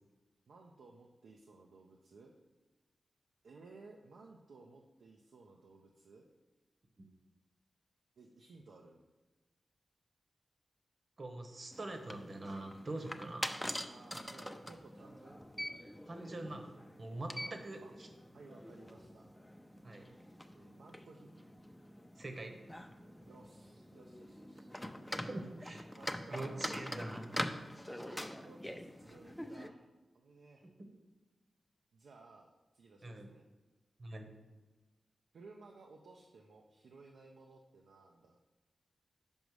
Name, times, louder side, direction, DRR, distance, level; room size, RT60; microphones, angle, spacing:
voice 1, 0.5-2.3 3.4-6.3 8.2-9.0 13.9-15.4 17.4-17.9 18.3-19.3 20.5-21.5 23.2-24.7 25.8-27.1 28.0-29.9 30.1-30.7 31.9-33.5 35.3-38.4, right 3 dB, 85° right, 1 dB, 0.5 m, -58 dB
voice 2, 11.2-13.6 16.1-16.7 17.0-18.1 19.8-20.1 22.2-22.5 25.1-25.8 26.3-27.2 33.0-33.3 34.0-34.3, right 2 dB, 55° right, 5 dB, 1.0 m, -44 dB
sound 1, 11.7-29.7, equal, 10° left, 0.5 m, -45 dB
5.3 x 5.1 x 4.7 m, 1.2 s
cardioid pair, 50°, 0 cm